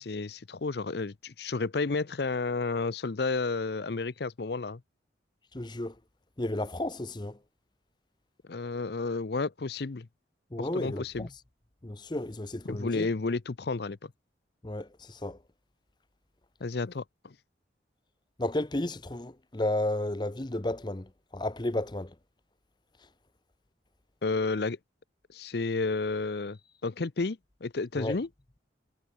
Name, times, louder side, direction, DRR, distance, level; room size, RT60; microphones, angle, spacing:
voice 1, 0.0-4.8 8.4-10.1 10.6-11.3 12.7-14.1 16.6-17.3 24.2-24.8 25.3-28.3, left 3 dB, 60° left, 0.6 m, -31 dB
voice 2, 5.5-6.0 6.4-7.4 10.5-11.3 11.8-13.1 14.6-15.4 18.4-22.2 28.0-28.2, left 1 dB, 25° left, 0.8 m, -33 dB
head